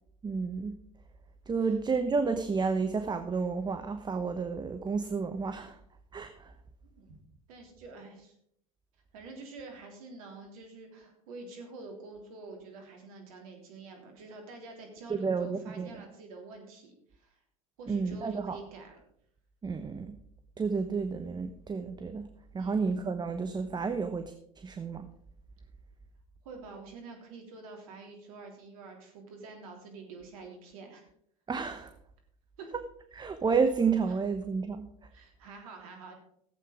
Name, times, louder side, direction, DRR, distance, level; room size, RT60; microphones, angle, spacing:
voice 1, 0.2-0.8 1.5-5.8 6.1-6.5 15.1-16.0 17.9-18.6 19.6-20.1 20.6-22.3 22.5-24.3 24.6-25.1 31.5-31.9 33.1-34.9, right 5 dB, 25° right, 8 dB, 1.0 m, -31 dB
voice 2, 7.5-8.3 9.1-17.4 17.8-19.0 22.6-22.9 26.4-31.0 32.6-32.7 34.1-34.2 35.1-36.1, right 3 dB, 75° right, 3 dB, 3.3 m, -47 dB
14.0 x 8.2 x 5.0 m, 0.69 s
hypercardioid pair, 75°, 18 cm